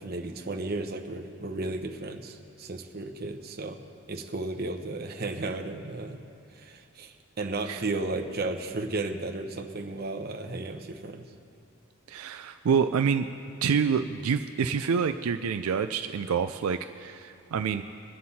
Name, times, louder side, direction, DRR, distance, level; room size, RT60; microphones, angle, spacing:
voice 1, 0.0-3.8 4.1-6.2 6.6-11.2, right 2 dB, 45° right, 5 dB, 0.8 m, -34 dB
voice 2, 12.1-13.3 13.6-17.8, right 6 dB, 80° right, 8 dB, 0.4 m, -27 dB
22.0 x 7.5 x 4.1 m, 2.5 s
head